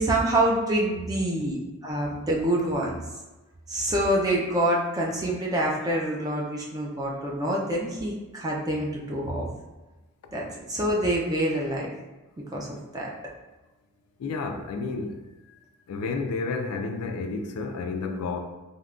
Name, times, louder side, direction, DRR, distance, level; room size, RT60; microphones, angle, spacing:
voice 1, 0.0-3.0 3.7-9.5 10.3-11.9 12.5-13.1, right 1 dB, 15° right, -3 dB, 0.4 m, -26 dB
voice 2, 14.2-15.2 15.9-18.4, left 4 dB, 80° left, 5 dB, 0.3 m, -30 dB
3.5 x 2.1 x 2.4 m, 1.1 s
head